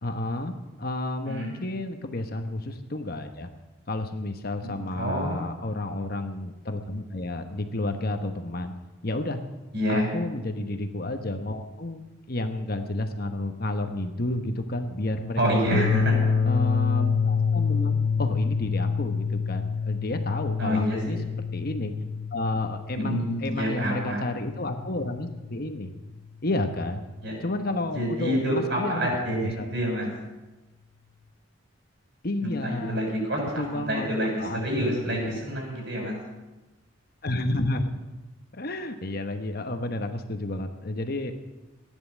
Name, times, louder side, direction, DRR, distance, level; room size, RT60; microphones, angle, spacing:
voice 1, 0.0-3.5 3.9-8.7 9.0-9.4 9.9-12.0 12.3-15.9 16.5-21.2 21.5-21.9 22.3-25.9 26.4-27.0 27.4-29.7 32.2-33.1 33.4-34.1 34.4-35.5 37.2-37.9 38.5-41.3, left 1 dB, 50° left, 6 dB, 1.1 m, -31 dB
voice 2, 4.9-5.4 9.7-10.1 15.4-16.0 20.6-21.2 22.9-24.3 27.2-27.3 27.9-30.1 32.4-36.2, equal, 60° right, -1 dB, 6.9 m, -28 dB
sound 1, 15.6-25.5, left 5 dB, 80° right, 4.5 m, -27 dB
15.0 x 10.5 x 7.3 m, 1.1 s
head